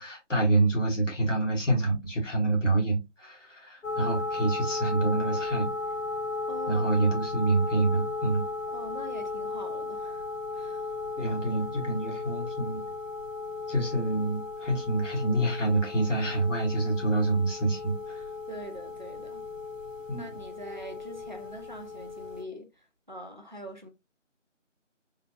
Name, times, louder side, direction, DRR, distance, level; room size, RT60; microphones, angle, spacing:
voice 1, 0.0-5.7 6.7-8.5 11.2-12.8 13.7-18.2 20.1-20.4, right 2 dB, 75° left, 1.8 m, -27 dB
sound 1, 3.8-22.4, left 3 dB, 90° left, 1.0 m, -35 dB
voice 2, 6.5-6.8 8.7-10.3 10.5-11.2 18.5-19.4 20.2-23.9, equal, 40° right, 0.5 m, -44 dB
3.6 x 2.9 x 2.3 m
figure-of-eight pair, 170°, 38 cm